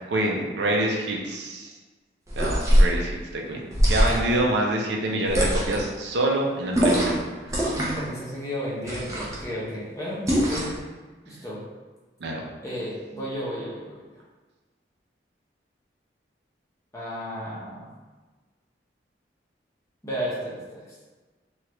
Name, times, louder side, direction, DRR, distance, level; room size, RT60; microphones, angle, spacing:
voice 1, 0.1-1.7 2.4-7.6 12.2-12.5, right 1 dB, 80° right, 0 dB, 0.5 m, -26 dB
sound 1, 2.3-3.0 3.7-4.4 5.3-5.9 6.7-7.2 7.5-8.1 8.8-9.4 10.3-10.8, equal, 15° right, 0.5 m, -22 dB
voice 2, 7.6-10.7 11.3-11.6 12.6-13.8 16.9-17.9 20.0-20.9, equal, 15° left, -7 dB, 0.7 m, -33 dB
3.1 x 2.3 x 2.9 m, 1.3 s
head